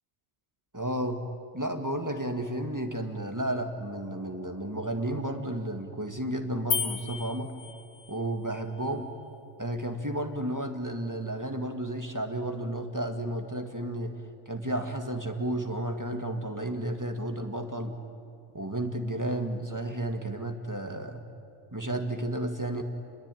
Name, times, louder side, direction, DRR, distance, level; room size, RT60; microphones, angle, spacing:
voice 1, 0.7-1.2 1.5-7.5 8.1-9.1 9.6-14.1 14.5-18.0 18.5-21.2 21.7-22.8, right 1 dB, 15° right, 4 dB, 1.7 m, -32 dB
sound 1, 6.7-8.2, left 7 dB, 80° left, 1.3 m, -33 dB
27.5 x 21.5 x 9.2 m, 2.4 s
omnidirectional pair, 1.2 m